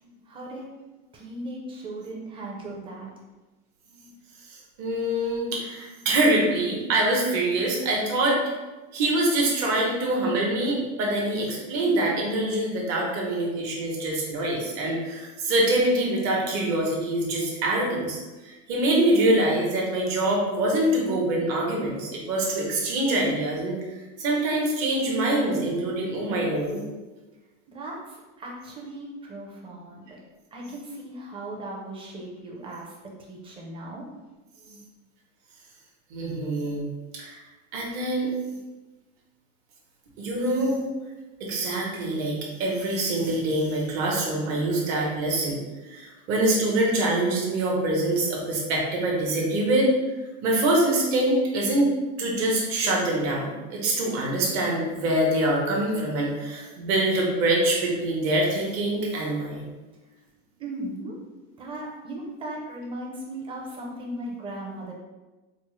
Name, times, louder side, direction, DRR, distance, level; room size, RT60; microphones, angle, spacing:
voice 1, 0.3-0.7 1.1-3.1 27.7-30.2 30.5-34.0 60.6-61.2 61.6-64.9, right 1 dB, 15° right, -2 dB, 0.5 m, -37 dB
voice 2, 4.8-8.4 8.9-26.8 34.7-34.8 36.1-36.8 37.1-37.4 37.7-38.3 40.2-40.9 41.4-45.6 45.8-49.9 50.4-51.9 52.2-59.7, right 1 dB, 50° right, -2 dB, 1.1 m, -25 dB
4.4 x 2.0 x 3.1 m, 1.2 s
supercardioid pair, 150°, 36 cm